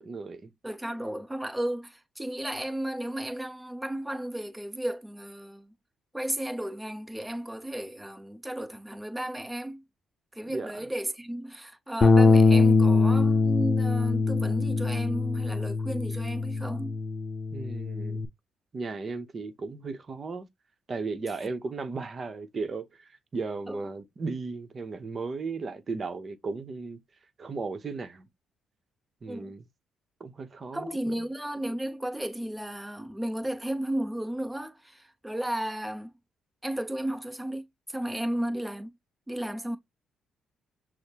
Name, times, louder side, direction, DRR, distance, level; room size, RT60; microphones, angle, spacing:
voice 1, 0.0-0.5 10.5-10.9 17.5-18.2 18.7-20.5 20.9-27.0 27.4-28.3 29.2-29.6 30.2-31.3, right 4 dB, 40° right, 0.9 m, -36 dB
voice 2, 0.6-5.7 6.1-9.8 10.3-17.0 23.7-23.9 29.3-29.5 30.7-36.1 36.6-38.9 39.3-39.8, right 1 dB, 10° right, 0.8 m, -34 dB
Bass guitar, 12.0-18.3, left 3 dB, 40° left, 0.6 m, -23 dB
6.4 x 2.1 x 2.9 m
cardioid pair, 90°, 0 cm